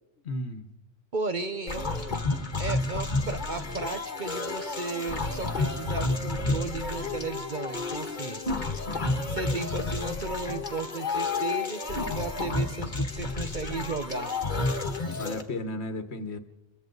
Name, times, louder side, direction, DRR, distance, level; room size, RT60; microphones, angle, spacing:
voice 1, 0.2-0.7 15.1-16.4, left 1 dB, 60° left, 1.5 m, -34 dB
voice 2, 1.1-2.1 2.6-8.4 9.3-14.3, right 3 dB, 40° right, 1.0 m, -35 dB
sound 1, 1.7-15.4, left 3 dB, 40° left, 1.6 m, -30 dB
29.0 x 22.5 x 4.0 m
omnidirectional pair, 1.3 m